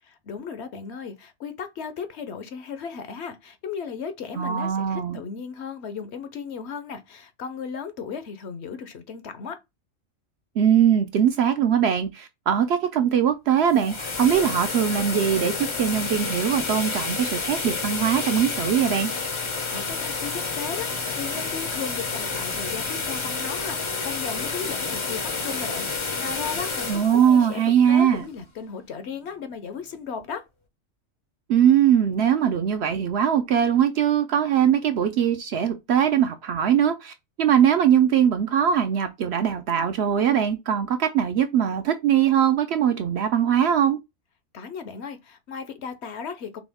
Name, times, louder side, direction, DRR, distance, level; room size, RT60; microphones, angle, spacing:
voice 1, 0.2-9.6 19.7-30.5 44.5-46.6, left 6 dB, 60° left, 0.9 m, -36 dB
voice 2, 4.4-5.2 10.6-19.1 26.9-28.2 31.5-44.0, right 9 dB, 65° right, 0.7 m, -21 dB
sound 1, 13.5-28.5, left 4 dB, 35° left, 0.5 m, -30 dB
6.0 x 2.3 x 3.5 m
omnidirectional pair, 1.4 m